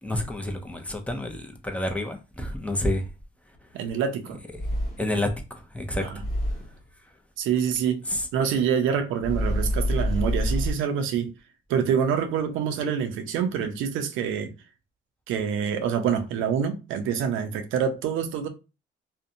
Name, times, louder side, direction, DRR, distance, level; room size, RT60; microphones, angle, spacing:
voice 1, 0.0-3.0 4.5-4.6 5.0-6.1 8.1-8.3, left 1 dB, 5° left, 0.5 m, -29 dB
sound 1, 3.6-3.7 4.5-5.2 6.2-6.8 9.2-10.7, equal, 40° left, 1.1 m, -26 dB
voice 2, 3.7-4.4 6.0-6.2 7.4-8.0 8.3-11.3 11.7-14.5 15.3-18.5, right 7 dB, 90° right, 0.5 m, -26 dB
2.6 x 2.1 x 2.6 m
cardioid pair, 90°, 20 cm